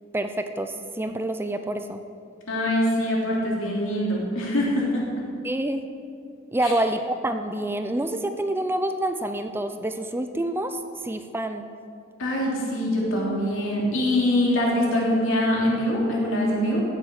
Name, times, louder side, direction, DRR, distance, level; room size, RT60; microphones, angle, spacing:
voice 1, 0.1-2.0 5.4-5.8 6.5-11.7, right 1 dB, 10° right, 8 dB, 0.4 m, -27 dB
voice 2, 2.5-5.1 6.6-6.7 12.2-16.8, left 1 dB, 75° left, -3 dB, 3.1 m, -23 dB
15.0 x 7.3 x 6.3 m, 2.4 s
head